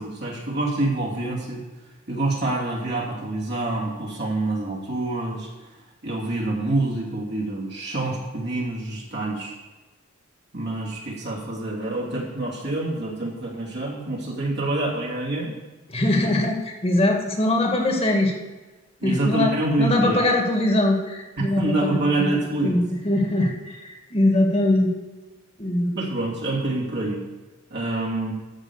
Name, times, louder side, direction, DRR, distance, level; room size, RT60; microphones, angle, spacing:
voice 1, 0.0-1.6 2.1-5.5 6.0-9.5 10.5-15.5 19.0-20.2 21.4-22.8 25.9-27.2 27.7-28.3, right 2 dB, 55° right, -3 dB, 3.0 m, -26 dB
voice 2, 15.9-18.3 19.0-19.5 19.8-22.4 22.6-24.9 25.6-26.1, left 1 dB, 30° left, 2 dB, 1.8 m, -22 dB
13.5 x 5.3 x 7.1 m, 1.2 s
head